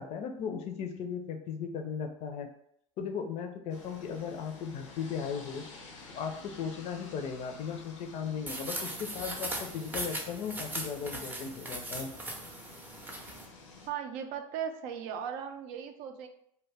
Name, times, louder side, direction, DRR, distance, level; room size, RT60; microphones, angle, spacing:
voice 1, 0.0-2.5 3.0-5.6 6.1-12.1, left 6 dB, 45° left, 6 dB, 0.5 m, -37 dB
sound 1, 3.7-13.9, left 3 dB, 90° left, 0.6 m, -51 dB
sound 2, 8.5-13.5, right 1 dB, 10° right, 0.5 m, -39 dB
voice 2, 13.9-16.3, right 8 dB, 65° right, 6 dB, 0.4 m, -37 dB
2.2 x 2.2 x 3.3 m, 0.70 s
hypercardioid pair, 95°, 15 cm